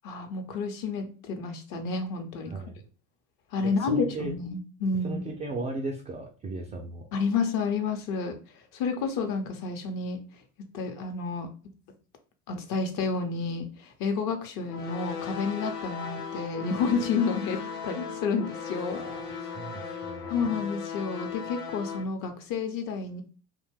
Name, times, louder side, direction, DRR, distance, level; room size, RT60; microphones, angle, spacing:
voice 1, 0.0-2.5 3.5-5.2 7.1-8.4 8.7-10.2 10.7-11.5 12.5-19.0 20.3-23.2, left 4 dB, 50° left, 5 dB, 0.8 m, -30 dB
voice 2, 2.5-2.8 3.6-4.3 5.0-7.1 18.9-20.4, right 2 dB, 20° right, 0 dB, 0.3 m, -36 dB
sound 1, 14.7-22.0, left 6 dB, 85° left, 0.8 m, -37 dB
2.6 x 2.2 x 3.3 m, 0.37 s
hypercardioid pair, 75°, 43 cm